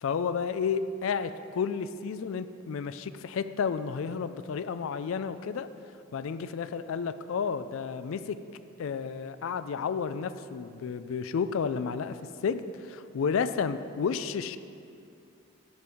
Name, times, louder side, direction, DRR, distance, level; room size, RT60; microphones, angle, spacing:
voice 1, 0.0-5.7 6.1-8.4 8.8-12.2 12.4-14.6, left 6 dB, 65° left, 12 dB, 0.3 m, -31 dB
12.0 x 4.6 x 4.9 m, 2.4 s
head